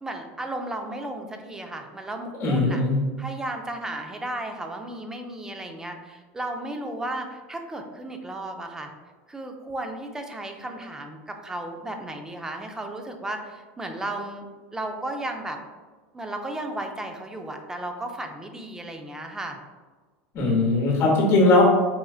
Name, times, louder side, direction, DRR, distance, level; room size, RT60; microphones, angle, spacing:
voice 1, 0.0-2.8 3.2-8.9 9.3-14.5 14.7-15.6 16.1-19.6, right 1 dB, 10° right, 4 dB, 0.4 m, -34 dB
voice 2, 2.4-3.0 20.3-21.6, left 2 dB, 40° left, -1 dB, 1.1 m, -19 dB
4.2 x 2.4 x 2.3 m, 1.4 s
supercardioid pair, 125°, 6 cm